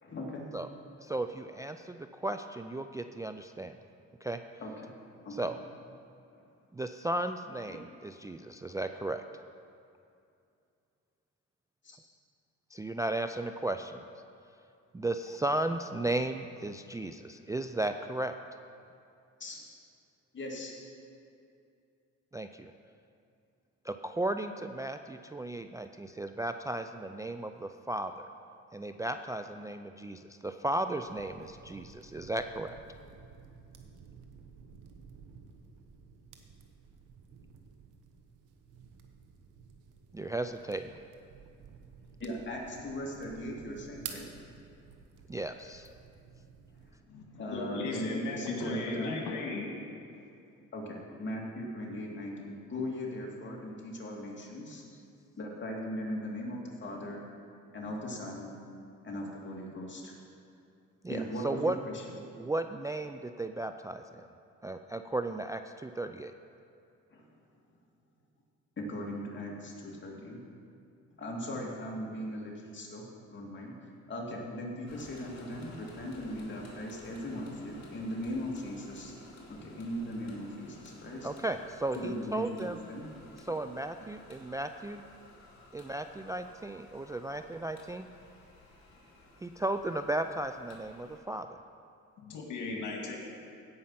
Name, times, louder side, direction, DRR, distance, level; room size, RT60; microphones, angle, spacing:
voice 1, 0.0-0.4 4.6-4.9 5.2-5.4 7.7-7.8 11.8-12.0 19.4-19.6 20.3-20.7 42.2-44.3 47.3-49.2 50.7-54.8 55.4-57.2 57.7-58.5 59.0-60.1 61.1-61.9 67.1-67.2 68.8-70.4 71.2-73.7 74.1-79.1 79.5-81.3 81.9-83.1 92.6-92.7, equal, 40° left, -2 dB, 2.5 m, -38 dB
voice 2, 1.0-3.8 4.2-4.4 5.3-5.6 6.7-9.4 12.7-14.1 14.9-18.3 22.3-22.7 23.8-28.3 28.7-32.8 40.1-41.0 45.3-45.9 61.0-61.8 62.4-64.3 64.6-66.3 81.2-82.8 83.4-85.0 85.7-88.1 89.4-91.5, right 2 dB, 10° right, 8 dB, 0.3 m, -35 dB
sound 1, 31.0-46.9, right 7 dB, 80° right, 1.1 m, -52 dB
voice 3, 47.1-49.7 92.2-93.3, left 4 dB, 80° left, 0 dB, 2.0 m, -37 dB
sound 2, 74.9-91.2, left 1 dB, 60° left, 2.6 m, -53 dB
16.5 x 5.6 x 5.7 m, 2.5 s
cardioid pair, 90°, 30 cm